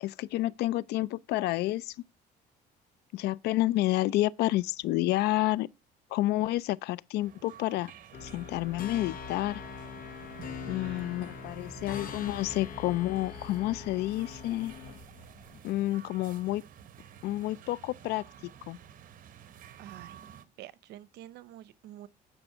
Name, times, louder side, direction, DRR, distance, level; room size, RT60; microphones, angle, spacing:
voice 1, 0.0-1.9 3.1-5.7 6.1-7.9 8.2-9.6 10.7-14.7 15.6-16.6 17.2-18.2 18.7-18.8, left 16 dB, 80° left, 0.4 m, -29 dB
sound 1, 7.2-20.4, right 9 dB, 55° right, 1.0 m, -51 dB
sound 2, 8.1-15.6, left 6 dB, 55° left, 1.2 m, -43 dB
voice 2, 10.6-11.1 19.8-22.1, right 13 dB, 80° right, 0.7 m, -49 dB
9.2 x 5.3 x 5.6 m
cardioid pair, 110°, 17 cm